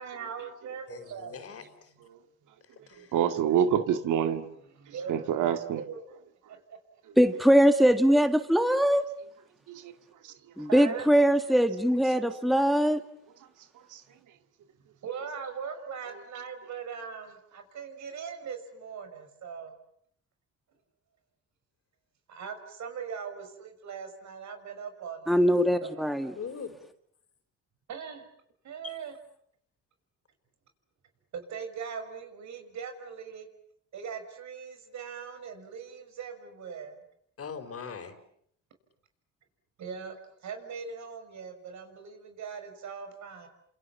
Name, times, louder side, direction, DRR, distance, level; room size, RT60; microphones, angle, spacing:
voice 1, 0.0-1.5 4.7-6.1 6.5-6.6 10.7-11.1 15.0-19.7 22.3-25.4 25.8-26.1 27.9-28.3 28.6-29.2 31.3-33.5 33.9-37.0 39.8-40.2 40.4-43.5, right 6 dB, 65° right, 7 dB, 6.0 m, -40 dB
voice 2, 0.9-1.9 2.9-3.2 26.4-26.7 28.8-29.0 37.4-38.2, left 6 dB, 50° left, 8 dB, 4.8 m, -41 dB
voice 3, 3.1-4.5 5.1-5.8 9.7-9.9, right 9 dB, 85° right, 8 dB, 2.1 m, -26 dB
voice 4, 7.2-9.0 10.6-13.0 25.3-26.3, equal, ahead, 8 dB, 1.8 m, -22 dB
29.5 x 27.5 x 7.2 m, 0.69 s
cardioid pair, 90°, 30 cm